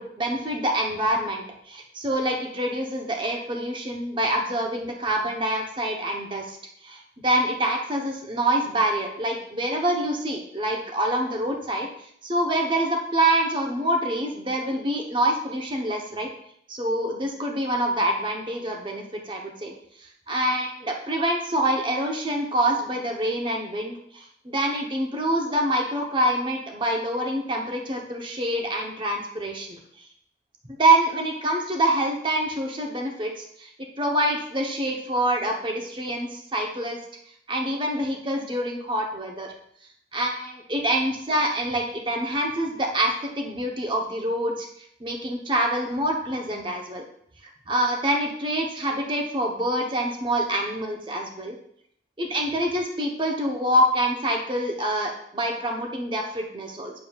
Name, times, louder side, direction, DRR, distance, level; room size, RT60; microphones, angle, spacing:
voice 1, 0.0-6.6 6.8-11.9 12.2-16.3 16.7-19.7 20.3-29.8 30.8-33.7 34.0-37.0 37.5-39.5 40.1-44.7 45.0-47.0 47.7-51.5 52.2-56.9, right 1 dB, 25° right, 2 dB, 0.8 m, -26 dB
9.0 x 6.9 x 2.3 m, 0.69 s
head